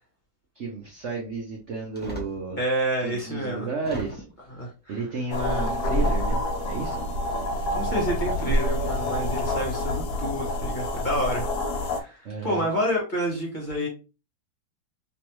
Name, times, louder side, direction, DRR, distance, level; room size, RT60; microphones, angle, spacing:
voice 1, 0.6-2.6 3.0-4.2 4.9-7.0 12.2-12.7, right 4 dB, 70° right, 0.6 m, -32 dB
sound 1, 1.9-2.4 3.1-3.2 3.8-4.5 5.9-6.6 7.7-7.9 8.3-8.8 9.5-9.7, right 1 dB, 10° left, 0.5 m, -37 dB
voice 2, 2.6-3.7 4.5-5.0 7.7-11.5 11.7-13.9, equal, 30° left, 1.2 m, -29 dB
sound 2, 5.3-12.0, left 1 dB, 70° left, 1.0 m, -27 dB
3.3 x 3.1 x 3.0 m
omnidirectional pair, 2.1 m